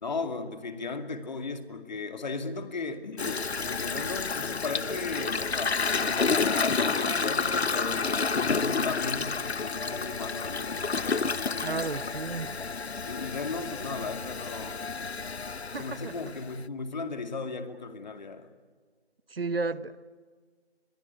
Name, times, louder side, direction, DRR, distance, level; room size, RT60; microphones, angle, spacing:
voice 1, 0.0-11.8 13.0-14.9 15.8-18.5, left 4 dB, 45° left, 8 dB, 2.4 m, -36 dB
Toilet flush, 3.2-16.6, left 4 dB, 80° left, 1.0 m, -30 dB
voice 2, 11.6-12.5 15.7-16.1 19.3-20.0, right 4 dB, 65° right, 16 dB, 1.1 m, -32 dB
29.0 x 22.5 x 8.5 m, 1.5 s
figure-of-eight pair, 160°, 32 cm